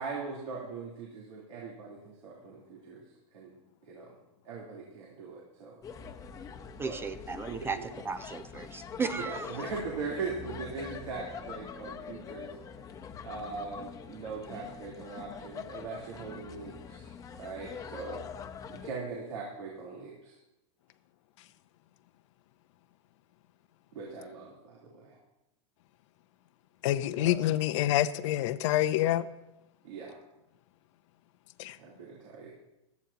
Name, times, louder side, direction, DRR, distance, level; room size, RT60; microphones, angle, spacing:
voice 1, 0.0-3.0 3.3-3.5 3.9-4.2 4.4-6.1 6.8-7.0 7.5-7.9 9.1-12.5 13.2-18.2 18.7-20.3 23.9-25.2 27.2-27.3 29.8-30.2 31.8-32.5, right 4 dB, 85° right, -4 dB, 3.4 m, -40 dB
sound 1, 5.8-18.9, left 7 dB, 20° left, 0.8 m, -44 dB
voice 2, 6.8-9.6, right 5 dB, 15° right, 12 dB, 0.4 m, -36 dB
voice 3, 26.8-29.2 31.6-31.8, left 13 dB, 65° left, 12 dB, 0.6 m, -27 dB
16.5 x 13.0 x 2.9 m, 0.92 s
supercardioid pair, 140°, 17 cm